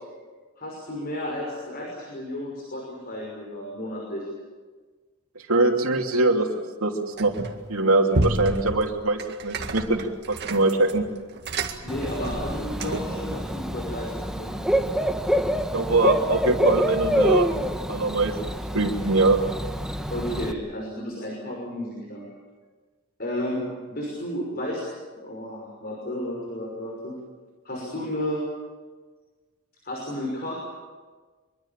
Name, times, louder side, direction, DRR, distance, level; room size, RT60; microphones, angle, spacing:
voice 1, 0.6-4.3 11.8-14.7 20.1-22.3 23.2-24.8 25.2-27.2 27.6-28.5 29.8-30.5, left 1 dB, 45° left, -1 dB, 6.0 m, -32 dB
voice 2, 5.5-6.5 6.8-6.9 7.2-7.3 7.7-11.0 15.7-17.5 17.9-18.3 18.7-19.4, right 2 dB, 80° right, 1 dB, 2.9 m, -22 dB
sound 1, 7.2-7.7 8.1-13.2, right 2 dB, 55° right, 2.0 m, -31 dB
Bird / Cricket, 11.9-20.5, equal, 5° right, 1.1 m, -27 dB
24.5 x 24.0 x 7.4 m, 1.4 s
head